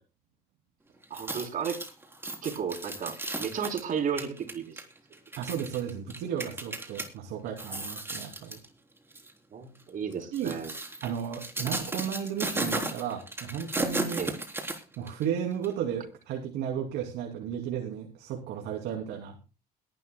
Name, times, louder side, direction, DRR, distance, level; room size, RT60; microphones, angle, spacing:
sound 1, 1.0-7.1 7.5-8.7 9.1-9.3 10.1-15.2 15.6-15.7, right 2 dB, 15° right, 3.6 m, -35 dB
voice 1, 1.1-1.8 2.4-4.8 9.5-10.7 14.2-14.4, right 7 dB, 55° right, 4 dB, 3.7 m, -33 dB
voice 2, 5.4-8.6 10.3-10.6 11.0-14.2 15.0-19.4, right 8 dB, 85° right, 3 dB, 2.8 m, -34 dB
21.5 x 12.0 x 2.2 m, 0.30 s
cardioid pair, 110°, 17 cm